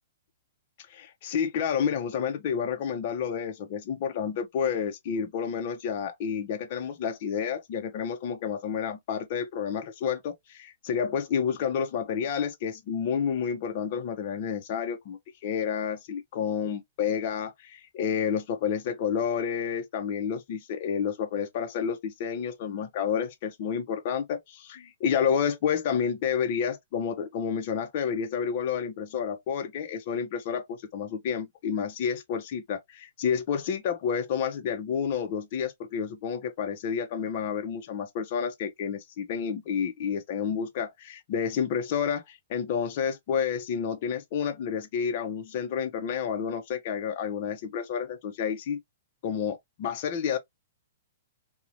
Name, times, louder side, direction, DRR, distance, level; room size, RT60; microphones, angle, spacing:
voice 1, 0.9-48.8 49.2-50.4, left 7 dB, 35° left, 0.5 m, -30 dB
2.8 x 2.0 x 2.5 m
hypercardioid pair, 170°, 0 cm